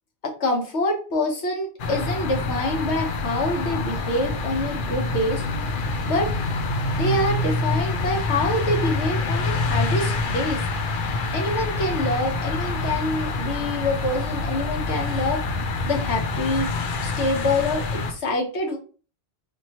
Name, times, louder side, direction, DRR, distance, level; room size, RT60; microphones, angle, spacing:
voice 1, 0.2-5.4 6.1-6.3 7.0-10.6 11.3-15.4 15.8-16.7 17.0-18.8, left 1 dB, 85° left, 1 dB, 1.4 m, -26 dB
sound 1, 1.8-18.1, left 3 dB, 60° left, 0.7 m, -26 dB
4.3 x 3.1 x 2.9 m, 0.38 s
omnidirectional pair, 1.1 m